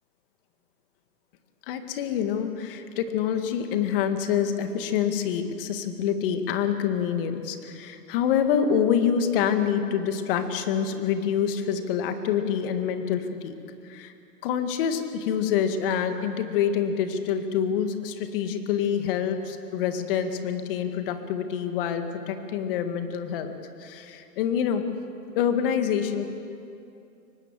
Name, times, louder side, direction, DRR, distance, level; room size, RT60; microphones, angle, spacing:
voice 1, 1.7-13.5 13.9-14.1 14.4-23.5 23.8-24.8 25.4-26.3, left 8 dB, 35° left, 7 dB, 1.9 m, -26 dB
24.0 x 19.5 x 7.6 m, 2.7 s
hypercardioid pair, 145°, 48 cm